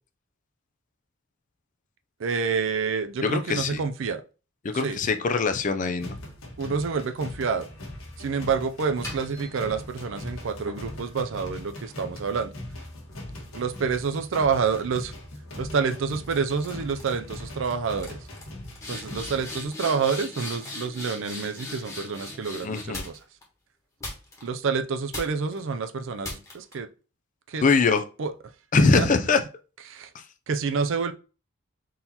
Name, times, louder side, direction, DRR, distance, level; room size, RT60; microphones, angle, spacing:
voice 1, 2.2-4.2 4.7-5.0 6.6-7.7 8.2-12.5 13.5-15.1 15.6-18.2 18.9-23.2 24.4-26.9 27.5-27.6 28.2-28.3 29.0-29.1 29.9-30.1 30.5-31.1, right 5 dB, 60° right, 0.4 m, -28 dB
voice 2, 3.2-3.8 4.6-6.2 22.6-23.0 27.6-28.0 28.7-29.4 30.1-30.2, left 4 dB, 35° left, 0.4 m, -22 dB
sound 1, 6.0-19.6, left 1 dB, 80° left, 1.3 m, -40 dB
sound 2, 9.0-10.1 10.7-14.2 14.6-15.0 15.7-16.0 16.2-16.7 16.9-17.4 17.6-17.7 18.0-23.4 24.0-24.7 25.1-25.6 26.2-26.7, left 2 dB, 15° left, 1.2 m, -40 dB
3.8 x 2.9 x 4.0 m
head